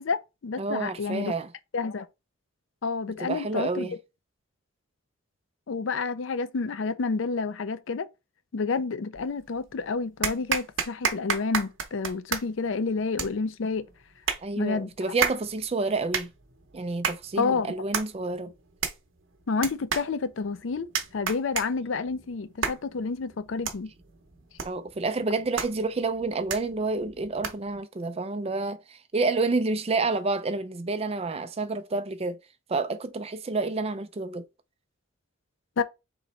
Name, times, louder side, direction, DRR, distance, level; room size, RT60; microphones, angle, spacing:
voice 1, 0.0-1.3 1.7-2.1 2.8-3.9 5.7-8.1 8.5-13.9 14.6-14.9 17.4-17.7 19.5-20.9 21.1-23.9 35.8-35.9, left 4 dB, 65° left, 0.5 m, -29 dB
voice 2, 0.6-1.5 3.2-3.9 14.4-16.3 16.7-18.5 24.6-32.4 32.7-34.4, right 3 dB, 30° right, 0.4 m, -29 dB
sound 1, 9.2-9.7 10.2-27.8, right 6 dB, 70° right, 0.8 m, -34 dB
3.8 x 3.0 x 4.1 m
head